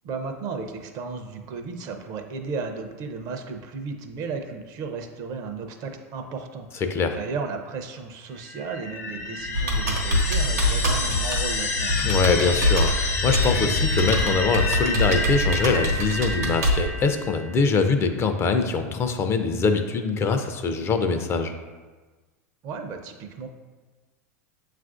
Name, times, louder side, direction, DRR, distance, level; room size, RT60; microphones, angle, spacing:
voice 1, 0.0-12.0 22.6-23.5, right 4 dB, 45° right, 5 dB, 0.5 m, -34 dB
sound 1, 8.4-17.7, left 3 dB, 80° left, 0.7 m, -28 dB
Computer keyboard, 9.5-16.8, equal, 85° right, 1.0 m, -25 dB
voice 2, 12.0-21.5, left 4 dB, 30° left, 7 dB, 0.4 m, -23 dB
7.2 x 2.5 x 2.4 m, 1.3 s
hypercardioid pair, 90°, 8 cm